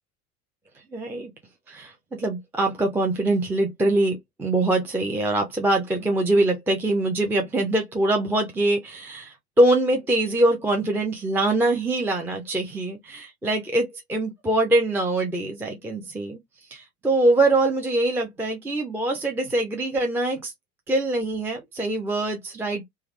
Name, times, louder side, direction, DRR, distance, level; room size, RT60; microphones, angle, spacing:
voice 1, 0.9-1.3 1.7-16.4 16.7-20.5 20.9-22.9, right 2 dB, 5° right, 0.5 m, -23 dB
3.4 x 2.1 x 3.2 m
figure-of-eight pair, 75°, 45 cm